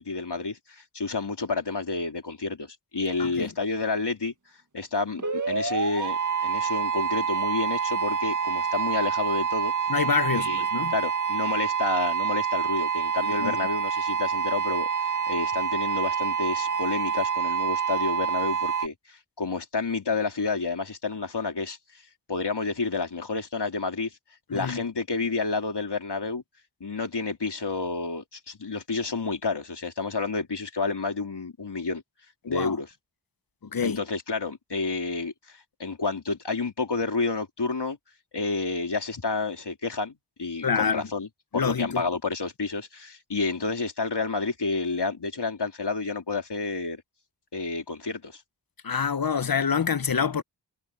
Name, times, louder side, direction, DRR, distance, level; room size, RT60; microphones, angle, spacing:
voice 1, 0.0-4.3 4.7-9.7 10.3-10.6 10.9-14.9 15.3-21.8 22.3-24.1 24.5-26.4 26.8-32.0 32.5-32.9 33.8-38.0 38.3-41.3 41.5-47.0 47.5-48.4, left 3 dB, 70° left, 3.6 m, -30 dB
sound 1, 5.2-18.9, right 7 dB, 45° right, 1.6 m, -27 dB
voice 2, 9.9-10.9 13.2-13.6 24.5-24.8 32.4-32.8 33.7-34.0 40.6-41.0 41.5-42.0 48.8-50.4, left 6 dB, 55° left, 0.9 m, -26 dB
wide cardioid pair, 65°, 42 cm